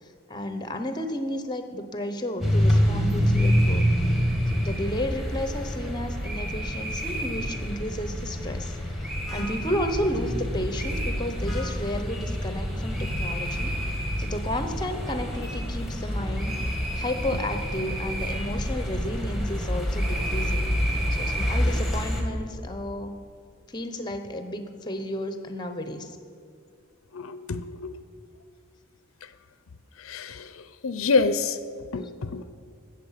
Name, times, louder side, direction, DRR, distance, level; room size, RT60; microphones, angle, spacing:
voice 1, 0.3-3.8 4.5-8.7 9.3-13.8 14.2-16.6 17.0-20.7 21.1-23.1 23.7-26.1, left 1 dB, 20° left, 8 dB, 0.8 m, -32 dB
sound 1, 2.4-22.2, equal, ahead, 1.7 m, -27 dB
voice 2, 27.1-27.9 30.0-30.5 30.8-31.6 31.9-32.5, left 4 dB, 85° left, 12 dB, 0.6 m, -26 dB
16.5 x 6.9 x 5.8 m, 2.3 s
head